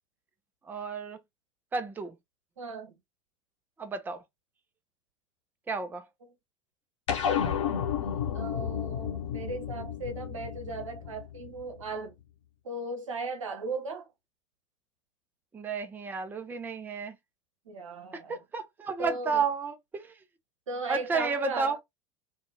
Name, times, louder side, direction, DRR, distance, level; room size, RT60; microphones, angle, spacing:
voice 1, 0.7-1.2 1.7-2.1 3.8-4.2 5.7-6.0 15.5-17.2 18.1-20.1 20.9-21.8, right 5 dB, 10° right, 0.5 m, -32 dB
voice 2, 2.6-3.0 6.2-6.3 8.3-12.2 12.6-14.1 17.6-18.4 19.0-19.4 20.7-21.8, right 3 dB, 75° right, 0.8 m, -37 dB
sound 1, 7.1-11.8, left 8 dB, 65° left, 0.8 m, -32 dB
2.7 x 2.2 x 2.8 m
figure-of-eight pair, 75°, 17 cm